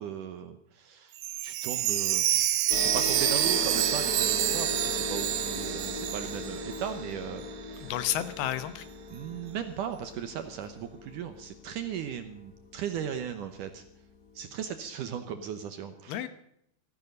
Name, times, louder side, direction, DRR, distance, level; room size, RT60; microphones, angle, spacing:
voice 1, 0.0-7.9 9.1-13.8 14.4-16.2, right 8 dB, 70° right, 8 dB, 2.1 m, -37 dB
Chime, 1.2-7.1 7.4-7.5 8.1-8.2, right 13 dB, 85° right, 2.9 m, -28 dB
sound 1, 2.7-13.6, left 3 dB, 60° left, 0.9 m, -38 dB
voice 2, 7.8-8.9 16.1-16.3, left 12 dB, 75° left, 12 dB, 2.9 m, -31 dB
15.5 x 15.5 x 5.3 m, 0.75 s
omnidirectional pair, 4.6 m